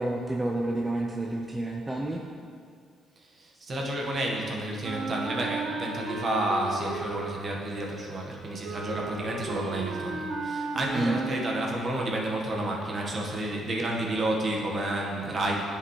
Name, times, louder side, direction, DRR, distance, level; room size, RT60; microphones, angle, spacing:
voice 1, 0.0-2.2 10.9-11.2, right 2 dB, 15° right, 0 dB, 0.6 m, -29 dB
voice 2, 3.4-15.6, right 1 dB, 45° right, -1 dB, 1.4 m, -30 dB
Wind instrument woodwind instrument, 4.8-11.8, right 3 dB, 65° right, 0.7 m, -35 dB
9.8 x 5.0 x 3.2 m, 2.2 s
supercardioid pair, 70°, 0 cm